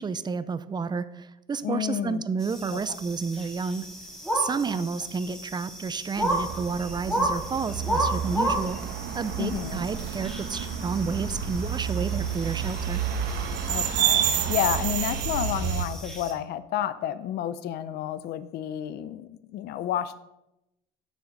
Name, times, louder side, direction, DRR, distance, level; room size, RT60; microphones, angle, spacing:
voice 1, 0.0-3.9 4.3-8.8 9.1-13.0, right 5 dB, 25° right, 14 dB, 0.6 m, -30 dB
voice 2, 1.6-2.2 2.7-2.8 4.8-4.9 9.4-9.8 13.7-20.2, left 11 dB, 70° left, 14 dB, 0.6 m, -30 dB
sound 1, 2.4-16.3, right 1 dB, ahead, 2.0 m, -34 dB
sound 2, 6.2-15.9, right 8 dB, 90° right, 1.2 m, -29 dB
9.9 x 6.4 x 5.2 m, 0.88 s
cardioid pair, 110°, 17 cm